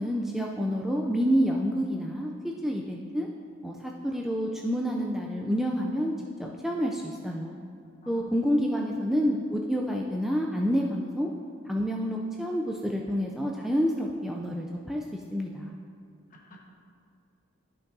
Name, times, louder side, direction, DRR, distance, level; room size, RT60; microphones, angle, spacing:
voice 1, 0.0-3.3 3.6-6.1 6.4-7.6 8.1-11.3 11.6-15.8, equal, ahead, -1 dB, 0.3 m, -28 dB
voice 2, 8.8-9.2 16.3-16.7, right 3 dB, 40° left, -2 dB, 1.2 m, -46 dB
12.0 x 5.3 x 2.6 m, 2.4 s
head